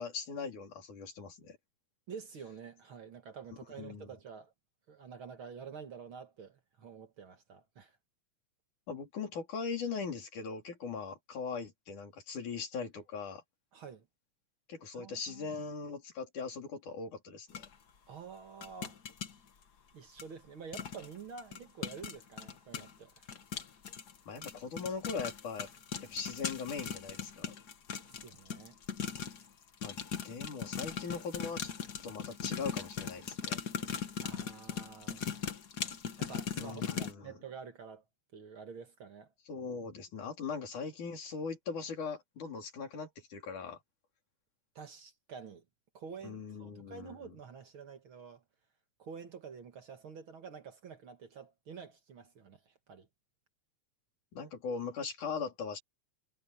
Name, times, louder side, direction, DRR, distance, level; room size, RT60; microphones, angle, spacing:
voice 1, 0.0-1.6 3.8-4.1 8.9-13.4 14.7-17.7 24.3-25.7 26.0-27.6 29.8-30.0 30.2-31.7 32.0-33.6 36.6-37.3 39.5-43.8 46.2-47.3 54.3-55.8, left 5 dB, 90° left, 5.4 m, -40 dB
voice 2, 2.1-4.5 4.9-8.0 13.7-14.1 14.9-15.5 18.1-19.0 19.9-23.3 28.0-28.8 34.2-35.5 36.2-38.0 38.3-39.3 44.8-45.6 45.9-48.4 49.0-53.1, right 6 dB, 50° right, 2.1 m, -48 dB
sound 1, 17.5-17.7 18.6-19.3 20.2-20.3 20.7-21.1 21.4-29.5 29.8-37.1, left 7 dB, 50° left, 1.3 m, -39 dB
omnidirectional pair, 3.4 m